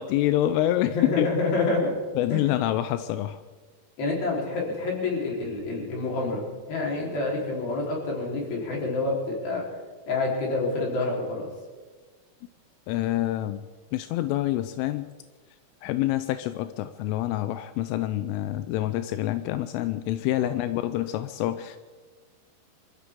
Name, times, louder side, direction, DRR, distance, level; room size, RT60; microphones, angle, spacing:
voice 1, 0.0-1.3 2.2-3.4 12.9-13.6 13.9-15.1 15.8-21.8, left 14 dB, 90° left, 10 dB, 3.2 m, -27 dB
voice 2, 0.9-1.9 2.3-2.5 4.0-9.6 10.1-11.5 20.4-20.5, left 3 dB, 50° left, -2 dB, 5.5 m, -28 dB
26.0 x 15.0 x 3.7 m, 1.3 s
omnidirectional pair, 5.6 m